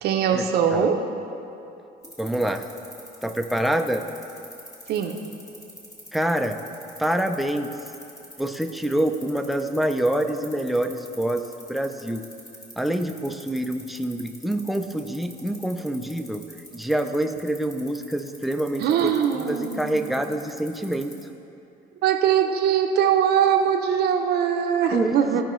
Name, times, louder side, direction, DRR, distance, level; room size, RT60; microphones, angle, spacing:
voice 1, 0.0-1.0 4.9-5.2 18.8-20.1 22.0-25.4, right 8 dB, 70° right, 4 dB, 0.6 m, -21 dB
sound 1, 2.0-21.2, left 1 dB, 20° left, 1.6 m, -44 dB
voice 2, 2.0-2.6 3.2-4.0 6.1-6.6 7.0-7.7 8.4-12.2 12.8-16.4 16.7-21.1 24.9-25.4, right 1 dB, ahead, 5 dB, 0.4 m, -26 dB
15.0 x 5.0 x 3.1 m, 2.8 s
cardioid pair, 110°, 17 cm